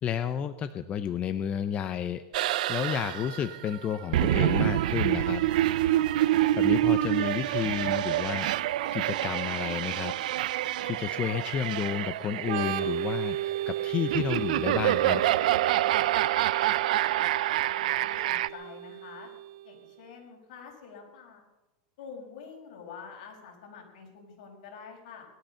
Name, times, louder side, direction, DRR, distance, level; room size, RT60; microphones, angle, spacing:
voice 1, 0.0-5.4 6.6-8.5 8.9-10.1 10.8-15.2, left 9 dB, 30° left, 10 dB, 0.7 m, -31 dB
sound 1, 2.3-18.5, right 14 dB, 70° right, 0.5 m, -27 dB
sound 2, 5.5-8.8, right 4 dB, 25° right, 4.0 m, -51 dB
Organ, 12.4-19.9, right 12 dB, 55° right, 1.3 m, -35 dB
voice 2, 17.8-19.3 19.6-21.4 22.0-25.3, left 6 dB, 65° left, 1 dB, 5.7 m, -47 dB
20.5 x 12.5 x 5.8 m, 1.1 s
supercardioid pair, 140°, 4 cm